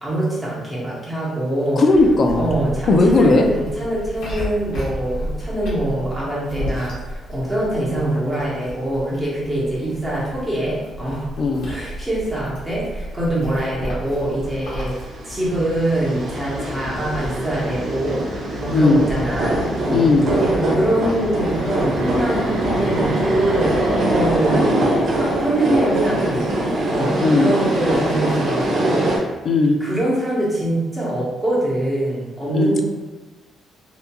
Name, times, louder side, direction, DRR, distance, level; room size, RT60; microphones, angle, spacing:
voice 1, 0.0-1.8 2.4-11.3 11.7-26.5 26.9-29.3 29.8-32.8, right 1 dB, 15° right, -7 dB, 0.9 m, -24 dB
voice 2, 1.8-2.5 2.9-3.5 11.4-11.7 18.7-19.0 19.9-20.3 27.2-27.5 29.4-29.8 32.5-32.8, left 3 dB, 50° left, 4 dB, 0.4 m, -16 dB
sound 1, 1.9-15.1, equal, 85° left, 0.9 m, -32 dB
sound 2, 14.8-29.2, right 1 dB, 60° right, 0.6 m, -22 dB
2.9 x 2.3 x 2.2 m, 1.2 s
cardioid pair, 90°, 0 cm